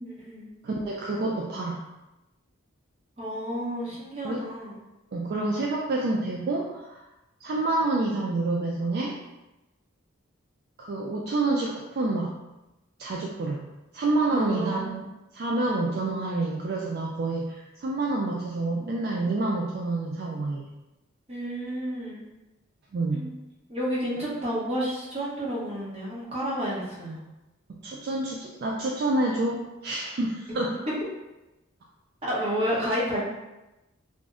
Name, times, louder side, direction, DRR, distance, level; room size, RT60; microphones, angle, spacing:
voice 1, 0.0-0.5 3.2-4.7 14.3-14.9 21.3-22.2 23.1-23.3 23.7-27.2 32.2-33.2, equal, 30° right, -7 dB, 0.8 m, -30 dB
voice 2, 0.6-1.8 4.2-4.4 5.1-7.0 7.4-9.2 10.8-12.3 13.0-13.6 13.9-15.0 15.3-20.7 22.9-23.3 27.8-30.8, right 2 dB, 50° right, -2 dB, 0.3 m, -28 dB
2.5 x 2.0 x 3.5 m, 1.0 s
head